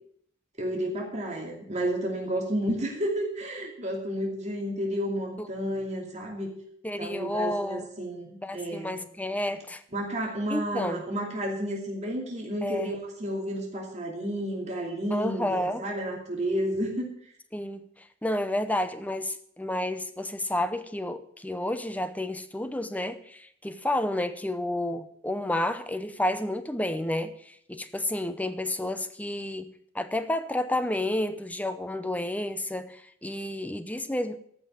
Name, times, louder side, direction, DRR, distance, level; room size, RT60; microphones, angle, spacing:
voice 1, 0.6-6.5 7.0-9.0 9.9-17.1, equal, 40° right, 2.7 m, -31 dB
voice 2, 6.8-7.9 8.4-9.8 10.5-11.0 12.6-12.9 15.1-15.8 17.5-17.8 18.2-34.4, left 1 dB, 10° left, 0.7 m, -30 dB
14.0 x 5.5 x 9.1 m
head